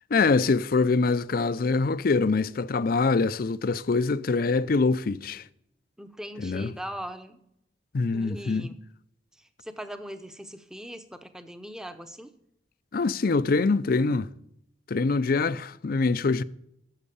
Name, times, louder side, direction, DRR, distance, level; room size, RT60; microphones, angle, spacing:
voice 1, 0.1-5.4 6.4-6.7 7.9-8.7 12.9-14.3 14.9-16.4, left 4 dB, 50° left, 0.5 m, -24 dB
voice 2, 6.0-7.4 8.1-8.8 9.4-12.3, equal, 5° right, 0.8 m, -40 dB
10.5 x 7.5 x 8.5 m
head